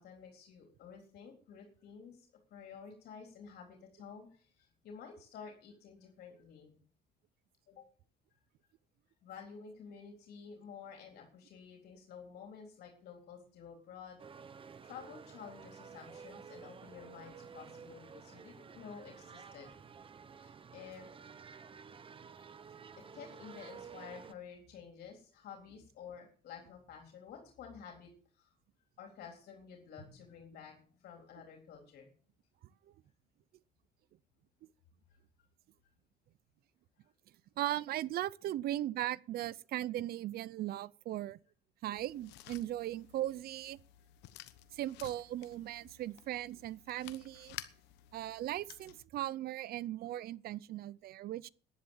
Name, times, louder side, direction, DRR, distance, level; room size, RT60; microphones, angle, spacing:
voice 1, 0.0-6.8 7.7-7.9 9.2-14.2 14.8-19.7 20.4-21.1 22.4-22.6 23.0-28.1 28.4-28.5 29.0-32.1 35.1-35.2, left 6 dB, 70° left, 3.8 m, -51 dB
sound 1, 14.2-24.3, right 6 dB, 30° right, 0.9 m, -52 dB
Drum, 30.0-32.9, equal, 5° right, 5.9 m, -64 dB
voice 2, 37.6-41.4 41.8-43.8 44.7-47.5 48.1-51.5, right 13 dB, 65° right, 0.6 m, -38 dB
sound 2, 41.9-49.1, left 14 dB, 90° left, 1.0 m, -53 dB
11.0 x 10.5 x 7.3 m
cardioid pair, 110°, 17 cm